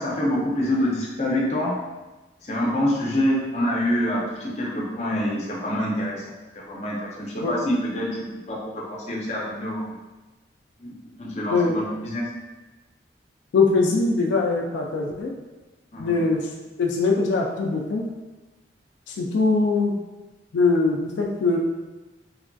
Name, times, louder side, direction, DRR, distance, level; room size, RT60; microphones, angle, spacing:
voice 1, 0.0-1.8 2.4-6.2 6.5-9.9 10.8-10.9 11.2-12.3 15.9-16.2, left 1 dB, 35° left, -4 dB, 0.6 m, -26 dB
voice 2, 11.5-11.8 13.5-15.3 16.0-16.5 16.8-18.0 19.1-20.0 20.5-21.6, left 3 dB, 85° left, 0 dB, 0.3 m, -22 dB
3.1 x 2.5 x 2.2 m, 1.1 s
head